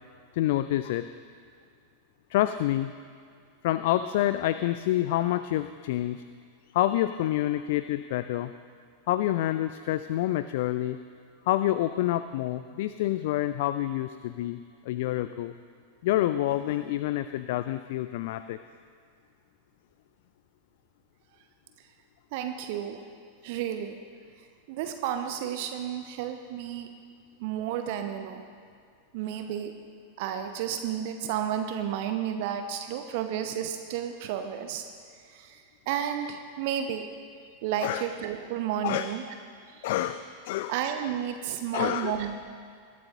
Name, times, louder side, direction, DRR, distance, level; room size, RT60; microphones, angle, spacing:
voice 1, 0.3-1.1 2.3-2.9 3.6-6.2 6.7-8.5 9.1-11.0 11.5-14.6 14.9-15.5 16.0-18.6 37.8-38.0 38.8-39.1 39.8-40.7 41.7-42.2, left 14 dB, 50° left, 12 dB, 0.3 m, -27 dB
voice 2, 22.3-23.1 23.4-24.0 24.7-26.9 27.4-28.4 29.1-29.7 30.2-34.8 35.3-37.1 37.6-39.2 40.7-42.4, right 9 dB, 50° right, 7 dB, 0.8 m, -32 dB
21.0 x 12.5 x 2.8 m, 2.2 s
figure-of-eight pair, 90°, 0 cm